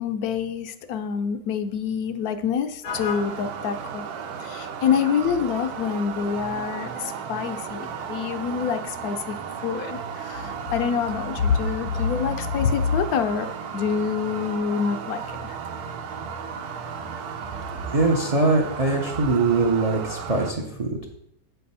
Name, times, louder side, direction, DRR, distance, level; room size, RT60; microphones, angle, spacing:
voice 1, 0.0-4.1 4.4-9.4 9.6-15.4, left 7 dB, 80° left, 9 dB, 1.0 m, -26 dB
sound 1, 2.9-20.5, right 6 dB, 90° right, 1.2 m, -34 dB
voice 2, 17.9-21.1, right 3 dB, 40° right, 1 dB, 0.5 m, -22 dB
7.6 x 3.4 x 5.4 m, 0.76 s
omnidirectional pair, 1.6 m